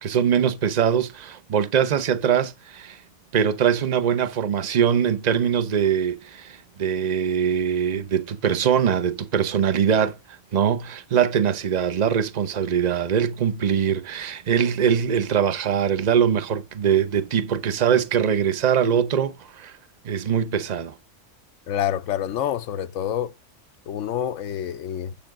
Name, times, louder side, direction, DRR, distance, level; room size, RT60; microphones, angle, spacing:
voice 1, 0.0-3.0 3.3-10.2 10.5-19.7 20.0-20.9, right 8 dB, 40° right, 0.7 m, -22 dB
voice 2, 21.7-23.3 23.9-25.3, left 10 dB, 85° left, 1.0 m, -27 dB
7.6 x 6.9 x 3.6 m
omnidirectional pair, 1.3 m